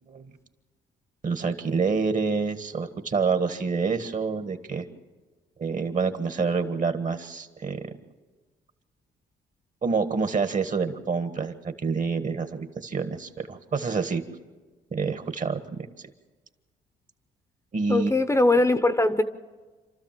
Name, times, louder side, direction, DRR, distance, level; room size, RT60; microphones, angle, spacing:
voice 1, 1.2-4.8 5.6-7.8 9.8-14.2 14.9-15.9 17.7-18.1, right 4 dB, 40° right, 9 dB, 1.6 m, -27 dB
voice 2, 17.9-19.2, left 2 dB, 15° left, 10 dB, 0.9 m, -21 dB
28.0 x 13.0 x 7.5 m, 1.3 s
cardioid pair, 90°, 20 cm